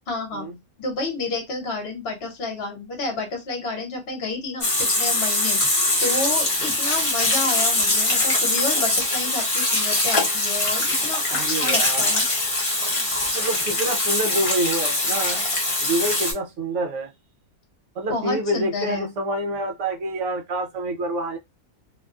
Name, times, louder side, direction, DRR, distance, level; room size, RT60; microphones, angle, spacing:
voice 1, 0.1-0.5 0.8-5.6 6.0-12.2 18.1-19.1, left 3 dB, 45° left, 1.1 m, -30 dB
Water tap faucet / Sink (filling or washing), 4.6-16.3, left 2 dB, 30° left, 0.6 m, -22 dB
voice 2, 11.3-12.1 13.3-15.4 15.8-17.1 18.0-21.4, right 1 dB, 65° right, 0.8 m, -27 dB
2.6 x 2.2 x 2.4 m
omnidirectional pair, 1.6 m